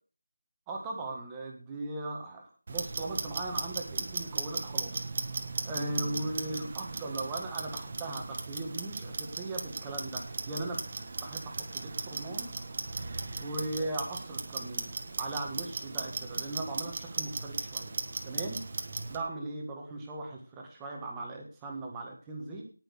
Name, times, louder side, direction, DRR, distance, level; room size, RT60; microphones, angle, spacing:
voice 1, 0.7-5.1 5.6-10.8 11.2-12.5 13.4-14.9 15.2-17.9 18.2-18.6 19.1-22.6, right 2 dB, 5° right, 0 dB, 1.8 m, -38 dB
Clock, 2.7-19.2, right 3 dB, 25° right, 1.4 m, -37 dB
18.0 x 6.4 x 6.6 m, 0.38 s
figure-of-eight pair, 175°, 0 cm